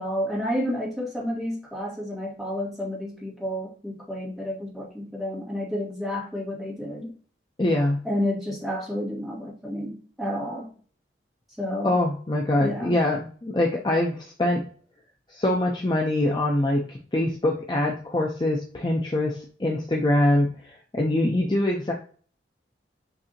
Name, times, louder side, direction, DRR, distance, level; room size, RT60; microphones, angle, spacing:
voice 1, 0.0-7.1 8.0-10.7 11.6-11.9 12.6-12.9, equal, ahead, -4 dB, 1.4 m, -30 dB
voice 2, 7.6-8.0 11.8-14.6 15.3-21.9, left 1 dB, 25° left, 0 dB, 0.5 m, -24 dB
6.4 x 2.7 x 2.8 m, 0.42 s
head